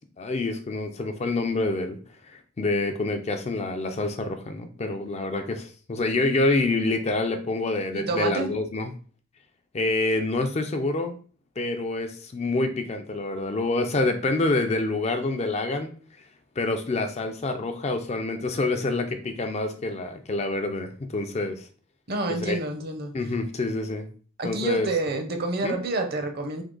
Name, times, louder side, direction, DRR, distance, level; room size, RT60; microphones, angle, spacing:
voice 1, 0.0-2.0 2.2-8.9 9.7-11.2 11.6-15.9 16.6-21.7 22.4-22.6 23.1-24.1 24.4-24.9 25.6-25.8, left 2 dB, 30° left, 7 dB, 0.4 m, -27 dB
voice 2, 7.9-8.5 22.1-23.1 24.4-26.6, right 2 dB, 50° right, 5 dB, 0.7 m, -28 dB
3.6 x 2.8 x 3.8 m, 0.41 s
head